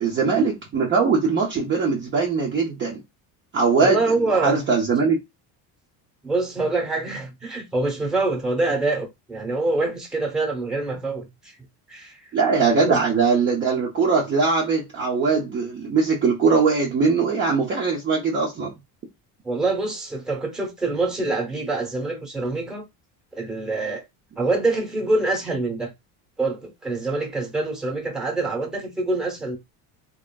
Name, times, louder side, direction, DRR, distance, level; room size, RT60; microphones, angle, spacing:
voice 1, 0.0-3.0 3.5-4.1 4.4-5.2 12.3-18.7, right 4 dB, 30° right, 0.5 m, -21 dB
voice 2, 3.8-4.6 6.2-11.5 11.9-12.2 12.8-13.0 19.4-22.9 23.3-24.0 24.4-25.9 26.4-29.6, right 2 dB, ahead, 0.8 m, -25 dB
2.9 x 2.5 x 2.2 m
cardioid pair, 140°, 42 cm